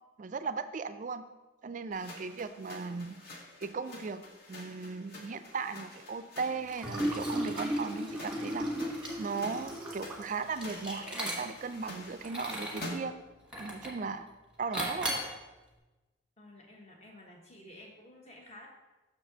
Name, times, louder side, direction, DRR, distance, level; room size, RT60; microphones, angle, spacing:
voice 1, 0.2-1.2 1.6-3.2 3.6-4.2 4.5-8.7 9.2-13.1 13.6-14.3 14.6-15.2, right 4 dB, 40° right, 11 dB, 0.3 m, -37 dB
sound 1, 1.9-13.3, left 1 dB, 50° left, 1.2 m, -48 dB
Liquid, 6.7-11.7 12.2-12.9 13.5-14.0 14.7-15.3, right 1 dB, 5° right, 1.2 m, -35 dB
voice 2, 16.4-18.7, left 1 dB, 35° left, 0 dB, 1.2 m, -52 dB
6.6 x 4.1 x 5.9 m, 1.1 s
head